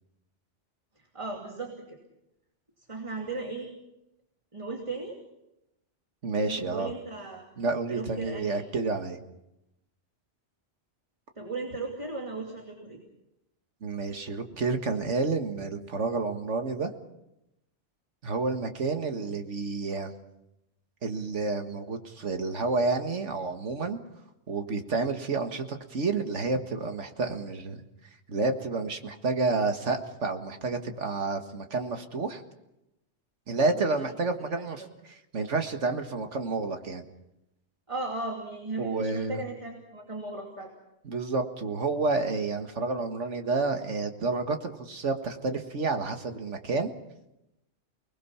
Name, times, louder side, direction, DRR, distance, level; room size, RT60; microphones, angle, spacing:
voice 1, 1.1-2.0 2.9-3.7 4.5-5.2 6.5-7.5 7.9-8.6 11.4-13.0 33.7-34.1 37.9-40.7, right 3 dB, 25° right, 1 dB, 2.7 m, -36 dB
voice 2, 6.2-6.9 7.6-9.2 13.8-16.9 18.2-20.1 21.0-24.0 24.5-27.8 28.3-32.4 33.5-37.0 38.8-39.4 41.0-46.9, right 3 dB, 80° right, 6 dB, 2.0 m, -30 dB
29.5 x 20.0 x 5.6 m, 0.89 s
omnidirectional pair, 1.2 m